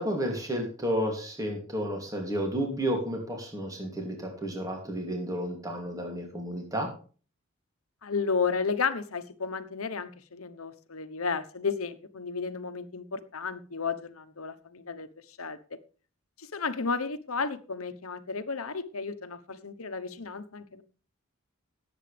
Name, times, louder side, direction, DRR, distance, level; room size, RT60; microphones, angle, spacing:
voice 1, 0.0-6.9, equal, 15° right, 2 dB, 2.8 m, -31 dB
voice 2, 8.0-15.1 15.4-15.6 16.4-20.8, left 5 dB, 85° left, 11 dB, 1.1 m, -33 dB
18.0 x 8.1 x 3.4 m, 0.38 s
head